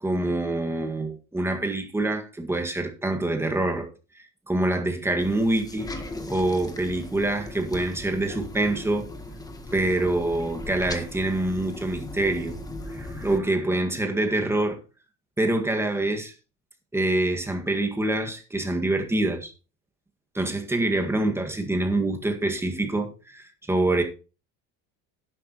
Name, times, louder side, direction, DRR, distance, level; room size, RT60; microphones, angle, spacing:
voice 1, 0.0-3.9 4.2-5.9 6.3-9.1 9.7-12.6 12.9-14.8 15.4-16.3 16.9-19.5 20.3-24.0, right 2 dB, 5° right, 1.9 m, -25 dB
sound 1, 5.2-13.4, left 2 dB, 10° left, 1.4 m, -38 dB
11.0 x 10.5 x 3.1 m
cardioid pair, 155°, 34 cm